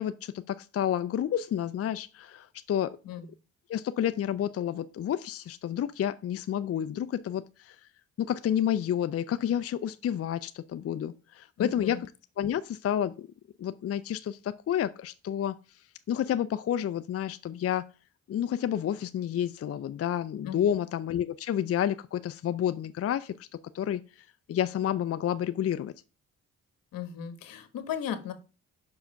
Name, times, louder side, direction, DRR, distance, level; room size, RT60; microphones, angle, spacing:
voice 1, 0.0-2.9 3.7-7.8 8.2-12.0 12.4-13.3 13.6-15.5 16.1-17.8 18.3-23.3 23.7-24.0 24.5-25.9, left 10 dB, 45° left, 0.5 m, -30 dB
voice 2, 11.6-12.0 20.4-20.6 26.9-28.3, left 9 dB, 80° left, 1.2 m, -36 dB
5.6 x 4.8 x 5.2 m
cardioid pair, 75°, 34 cm